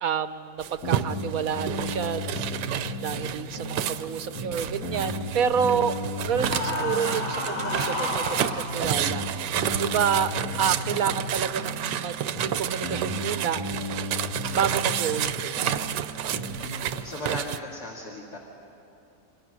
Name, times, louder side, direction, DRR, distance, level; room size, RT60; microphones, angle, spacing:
voice 1, 0.0-2.2 3.0-6.0 6.2-10.3 10.6-13.6 14.5-15.8, right 7 dB, 65° right, 11 dB, 1.0 m, -29 dB
sound 1, 0.6-17.6, right 10 dB, 80° right, 1.4 m, -31 dB
sound 2, 0.8-3.3 3.6-7.3 7.6-11.3 11.6-15.3 15.6-16.6, left 1 dB, 85° left, 4.1 m, -34 dB
sound 3, 6.5-8.7, left 2 dB, 30° left, 2.8 m, -30 dB
voice 2, 16.5-18.4, left 2 dB, 60° left, -1 dB, 2.9 m, -38 dB
28.0 x 26.5 x 6.3 m, 2.9 s
omnidirectional pair, 1.9 m